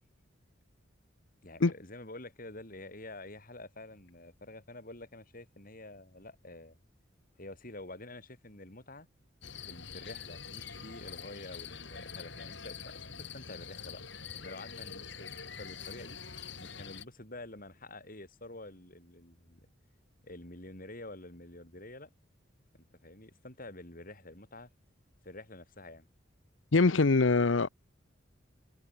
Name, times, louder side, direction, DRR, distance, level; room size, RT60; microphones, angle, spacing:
voice 1, 1.4-6.8 7.4-9.1 9.7-14.0 14.3-16.2 16.6-19.7 20.2-22.1 22.7-24.7 25.2-26.1, left 2 dB, 50° left, 7.1 m, -48 dB
sound 1, 9.4-17.0, left 6 dB, 65° left, 6.6 m, -45 dB
voice 2, 26.7-27.7, left 3 dB, 85° left, 0.8 m, -23 dB
head